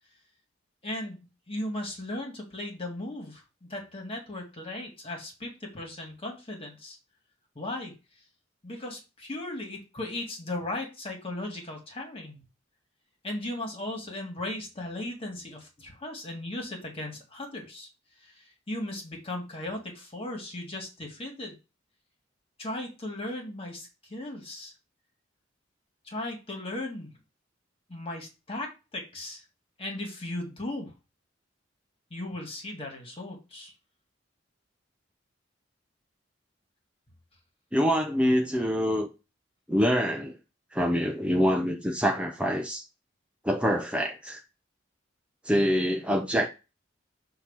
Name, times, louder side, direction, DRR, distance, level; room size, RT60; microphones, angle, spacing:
voice 1, 0.8-7.0 7.6-7.9 8.6-12.4 13.2-17.9 18.2-21.6 22.6-24.7 26.1-27.2 27.9-29.4 29.8-30.9 32.1-33.7, left 1 dB, 30° left, 2.0 m, -37 dB
voice 2, 37.7-39.1 39.7-40.3 40.7-42.8 43.4-44.4 45.4-46.5, equal, 5° right, 0.6 m, -25 dB
6.5 x 2.9 x 5.5 m
head